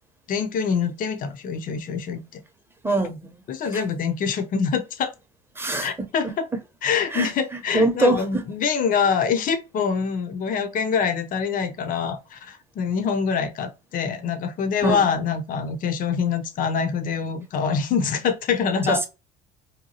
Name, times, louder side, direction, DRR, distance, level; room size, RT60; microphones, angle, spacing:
voice 1, 0.3-2.4 3.5-5.1 5.8-6.5 6.8-19.1, left 6 dB, 40° left, 0.6 m, -25 dB
voice 2, 2.8-3.4 5.6-6.3 7.1-7.3 7.7-8.4 14.8-15.0 18.9-19.1, right 2 dB, 10° right, 0.7 m, -23 dB
2.8 x 2.2 x 2.7 m
supercardioid pair, 85°, 21 cm